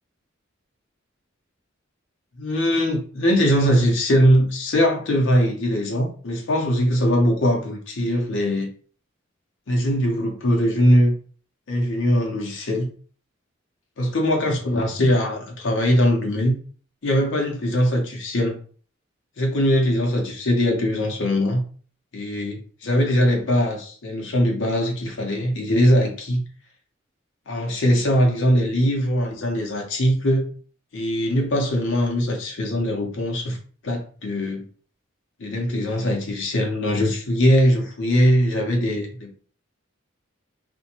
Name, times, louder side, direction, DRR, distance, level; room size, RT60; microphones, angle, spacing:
voice 1, 2.4-8.7 9.7-11.1 11.7-12.9 14.0-16.5 17.0-18.6 19.4-21.6 22.1-26.4 27.5-30.5 30.9-33.6 33.8-34.7 35.4-39.4, equal, 65° left, 0.6 m, -21 dB
2.5 x 2.1 x 2.8 m
head